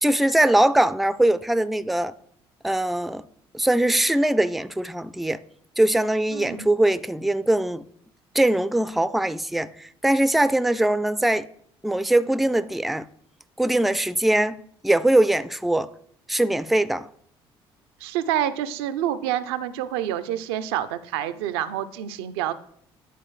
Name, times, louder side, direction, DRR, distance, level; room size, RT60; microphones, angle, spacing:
voice 1, 0.0-2.1 2.6-3.2 3.5-5.4 5.8-7.8 8.3-11.5 11.8-13.1 13.6-15.9 16.3-17.1, right 1 dB, ahead, 0.4 m, -21 dB
voice 2, 6.3-6.7 18.0-22.5, right 11 dB, 80° right, 0.4 m, -27 dB
10.0 x 4.0 x 3.1 m
hypercardioid pair, 55°, 13 cm